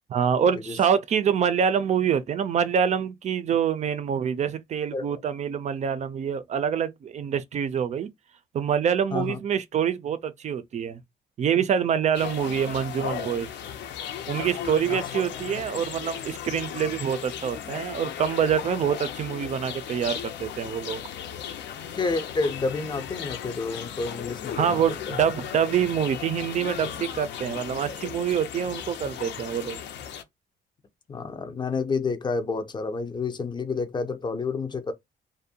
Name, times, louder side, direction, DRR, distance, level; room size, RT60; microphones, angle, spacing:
voice 1, 0.1-8.1 8.5-11.0 11.4-13.5 14.3-21.0 24.6-29.8, right 8 dB, 40° right, 0.4 m, -26 dB
sound 1, 12.1-30.2, left 9 dB, 85° left, 0.5 m, -36 dB
voice 2, 21.8-25.2 31.1-34.9, left 4 dB, 25° left, 0.4 m, -29 dB
2.5 x 2.1 x 2.7 m
cardioid pair, 140°, 18 cm